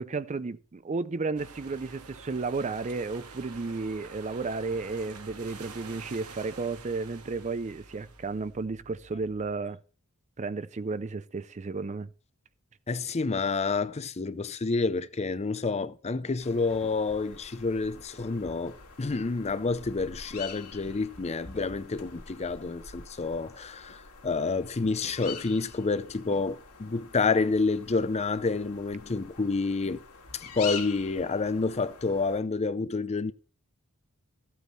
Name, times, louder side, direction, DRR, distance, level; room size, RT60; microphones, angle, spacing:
voice 1, 0.0-9.8 10.4-12.1, right 3 dB, 30° right, 0.5 m, -33 dB
sound 1, 1.4-9.5, right 4 dB, 85° right, 1.9 m, -48 dB
voice 2, 12.9-30.0 30.3-33.3, left 4 dB, 30° left, 0.6 m, -29 dB
sound 2, 16.4-32.4, left 6 dB, 85° left, 2.4 m, -45 dB
14.0 x 8.4 x 4.2 m
head